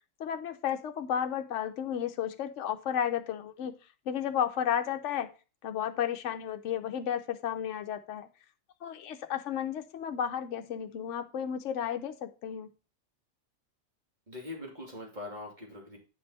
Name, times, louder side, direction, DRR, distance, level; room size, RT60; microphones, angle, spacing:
voice 1, 0.2-3.7 4.1-5.3 5.6-8.3 8.8-12.7, left 9 dB, 70° left, 7 dB, 1.0 m, -33 dB
voice 2, 14.3-16.0, left 2 dB, 35° right, -1 dB, 2.6 m, -42 dB
9.5 x 5.4 x 4.1 m, 0.32 s
omnidirectional pair, 1.4 m